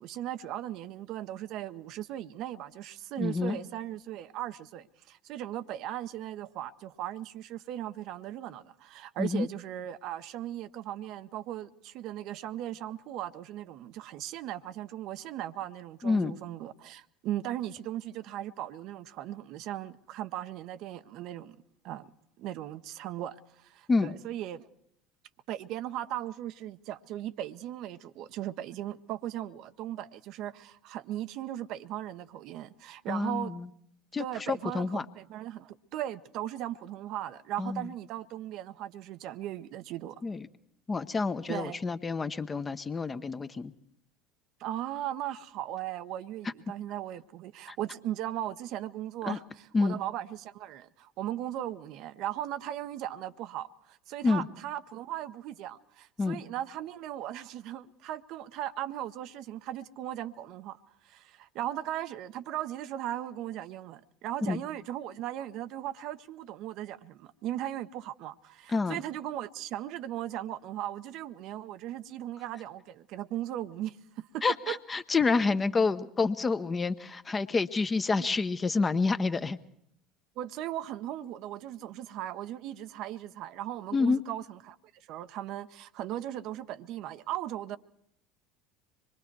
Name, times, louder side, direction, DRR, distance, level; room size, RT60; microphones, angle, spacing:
voice 1, 0.0-21.6 21.8-22.1 22.4-24.7 25.5-33.5 34.2-40.2 41.5-41.8 44.6-74.8 78.2-78.3 80.4-84.8 85.1-87.8, right 12 dB, 55° right, 0.7 m, -38 dB
voice 2, 3.2-3.6 9.2-9.5 16.0-16.4 23.9-24.1 33.1-33.6 34.1-35.0 37.6-37.9 40.2-40.5 40.9-43.7 47.7-47.8 49.2-49.4 49.7-50.0 54.2-54.5 56.2-56.4 64.4-64.6 68.7-69.0 74.4-79.6 83.9-84.2, left 4 dB, 25° left, 0.9 m, -28 dB
25.0 x 22.5 x 4.6 m
figure-of-eight pair, 70°, 0 cm